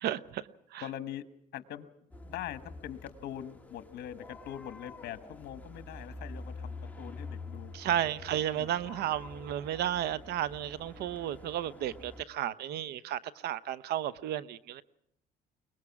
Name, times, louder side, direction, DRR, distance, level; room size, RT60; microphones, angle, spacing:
voice 1, 0.0-0.8 7.7-14.8, right 11 dB, 75° right, 0.9 m, -33 dB
voice 2, 0.8-1.2 1.5-1.9 2.2-8.0 8.5-9.0 12.4-12.5, left 11 dB, 70° left, 1.4 m, -43 dB
sound 1, 2.1-12.2, left 3 dB, 10° left, 1.9 m, -47 dB
23.5 x 20.0 x 6.0 m
cardioid pair, 110°, 17 cm